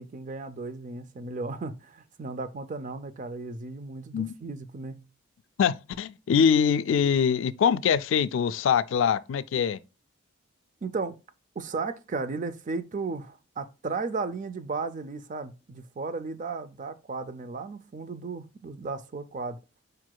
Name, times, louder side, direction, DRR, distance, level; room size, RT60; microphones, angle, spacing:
voice 1, 0.0-5.0 10.8-11.2 11.6-19.6, right 4 dB, 40° right, 0.4 m, -35 dB
voice 2, 5.6-9.8, left 7 dB, 65° left, 0.3 m, -23 dB
4.9 x 4.6 x 2.2 m
head